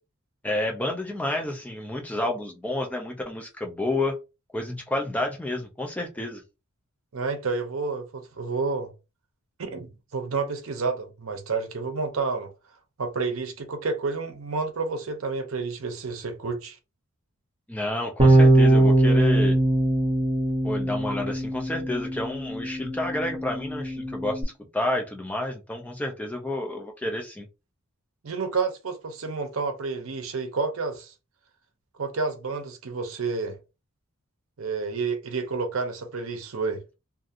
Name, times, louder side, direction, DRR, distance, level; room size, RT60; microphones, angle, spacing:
voice 1, 0.4-4.2 4.5-6.4 17.7-19.6 20.6-24.4 24.7-27.5, left 1 dB, 5° left, 0.4 m, -30 dB
voice 2, 7.1-8.9 9.6-12.5 13.0-16.8 28.2-31.1 32.0-33.6 34.6-36.8, right 4 dB, 65° right, 0.6 m, -30 dB
Bass guitar, 18.2-24.4, right 1 dB, 30° right, 0.8 m, -21 dB
2.7 x 2.5 x 2.4 m
head